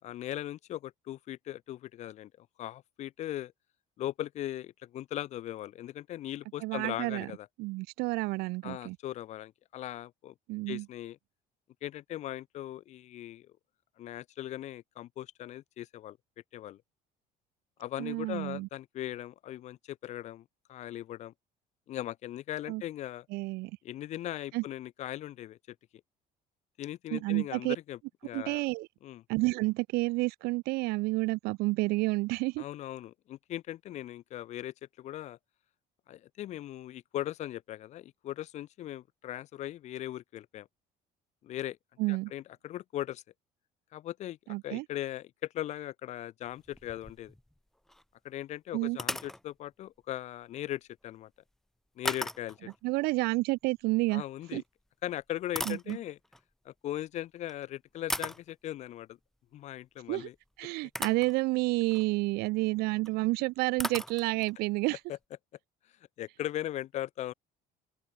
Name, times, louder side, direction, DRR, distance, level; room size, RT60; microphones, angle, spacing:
voice 1, 0.0-3.5 4.0-7.5 8.6-10.3 10.7-11.2 11.8-13.5 14.0-16.2 16.5-16.8 17.8-21.3 21.9-23.2 23.8-25.6 26.8-28.6 29.0-29.2 32.6-35.4 36.1-40.7 41.4-41.8 42.1-43.2 43.9-47.3 48.2-51.3 52.0-52.7 54.1-54.6 55.0-56.2 56.6-59.2 59.5-60.3 65.1-65.2 66.2-67.3, left 13 dB, 45° left, 1.4 m, -39 dB
voice 2, 6.6-7.3 7.6-9.0 10.5-10.8 18.0-18.7 22.7-22.8 23.3-23.7 24.5-24.6 27.1-27.8 28.3-28.9 29.3-32.6 42.0-42.3 44.5-44.8 48.7-49.0 52.8-54.2 54.5-54.6 55.6-56.0 60.1-60.3 60.6-65.0, right 23 dB, 80° right, 1.2 m, -30 dB
sound 1, 46.5-47.6 47.9-48.0 48.9-49.4 52.1-52.8 54.4-54.6 55.2-56.4 57.4-57.5 58.1-58.5 60.3-60.4 61.0-61.4 61.8-62.1 63.1-63.2 63.3-63.4 63.8-64.6, left 1 dB, ahead, 0.7 m, -37 dB
open air
cardioid pair, 175°, 16 cm